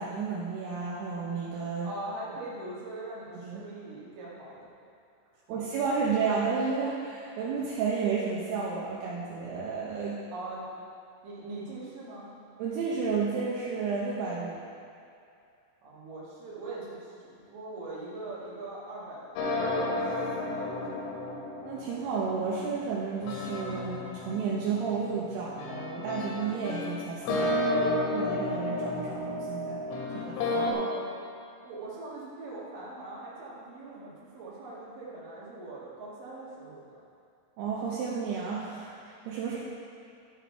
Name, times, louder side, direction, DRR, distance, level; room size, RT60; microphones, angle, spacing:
voice 1, 0.0-1.9 3.4-3.6 5.5-10.2 12.6-14.6 21.6-29.8 30.1-30.6 37.6-39.6, right 5 dB, 75° right, -6 dB, 2.5 m, -32 dB
voice 2, 1.8-4.6 5.5-5.6 10.3-10.6 11.2-12.3 15.8-21.0 30.6-31.1 31.6-37.0, right 2 dB, 55° right, -7 dB, 3.1 m, -41 dB
sound 1, 19.4-30.7, left 2 dB, 85° left, 3.6 m, -32 dB
12.5 x 6.2 x 4.6 m, 2.5 s
omnidirectional pair, 5.7 m